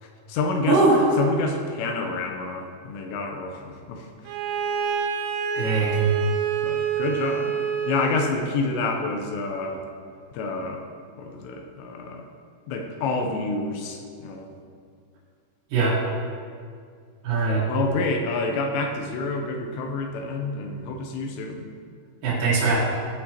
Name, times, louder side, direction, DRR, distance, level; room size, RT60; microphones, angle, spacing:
voice 1, 0.0-0.8 1.2-4.1 6.6-7.6 7.9-9.8 10.3-10.9 11.2-12.3 12.7-14.5 17.7-21.7, left 3 dB, 80° left, 3 dB, 2.7 m, -28 dB
voice 2, 0.7-1.0 5.5-6.0 15.7-16.0 17.2-17.6 22.2-22.8, right 3 dB, 55° right, -9 dB, 2.9 m, -21 dB
Bowed string instrument, 4.3-8.5, right 7 dB, 85° right, 3.2 m, -27 dB
13.5 x 6.8 x 2.9 m, 2.2 s
omnidirectional pair, 5.4 m